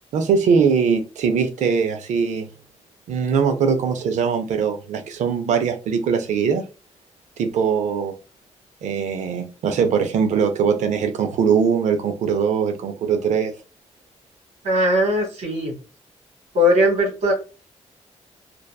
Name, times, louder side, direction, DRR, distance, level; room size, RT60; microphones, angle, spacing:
voice 1, 0.1-2.5 3.1-6.6 7.4-8.1 8.8-13.5, right 6 dB, 85° right, 6 dB, 0.4 m, -21 dB
voice 2, 14.6-15.7 16.5-17.3, left 1 dB, 70° right, 0 dB, 1.2 m, -19 dB
2.6 x 2.2 x 2.2 m, 0.32 s
cardioid pair, 115°, 12 cm